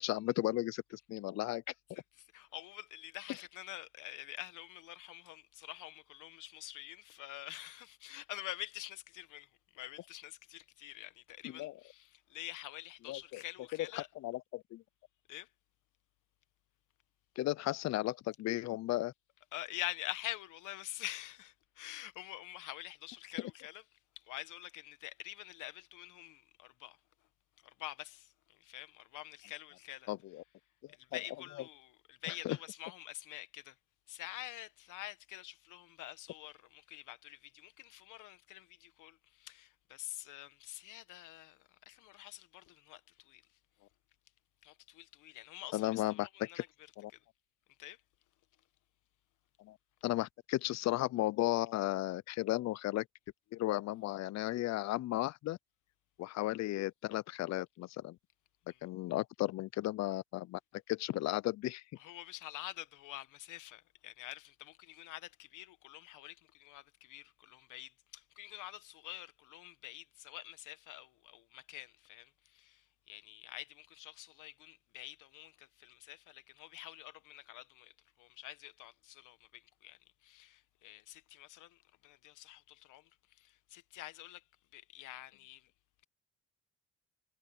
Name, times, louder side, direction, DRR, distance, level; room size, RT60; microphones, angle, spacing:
voice 1, 0.0-1.6 1.9-2.0 11.5-11.7 13.1-13.4 14.0-14.8 17.4-19.1 30.1-30.4 32.4-32.6 45.7-46.6 47.0-47.1 49.6-49.8 50.0-53.1 53.5-55.6 56.2-58.2 58.8-60.6 60.9-61.8, left 16 dB, 60° left, 0.5 m, -35 dB
voice 2, 1.9-14.1 15.3-15.5 19.5-23.8 24.2-27.0 27.6-30.1 30.9-33.8 34.1-43.4 44.6-46.7 47.1-47.2 47.8-48.0 58.7-58.8 62.0-84.4 84.7-85.7, left 15 dB, 90° left, 1.4 m, -47 dB
cardioid pair, 90°, 30 cm